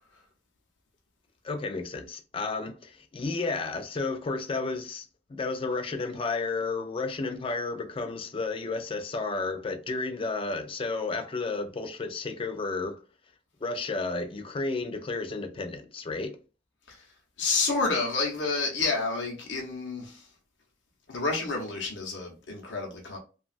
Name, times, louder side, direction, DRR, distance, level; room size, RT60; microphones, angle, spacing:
voice 1, 1.4-13.0 13.6-16.4, left 3 dB, 30° left, 0.4 m, -32 dB
voice 2, 17.4-20.2 21.1-23.2, left 3 dB, 85° left, 0.7 m, -29 dB
3.0 x 2.3 x 2.4 m
head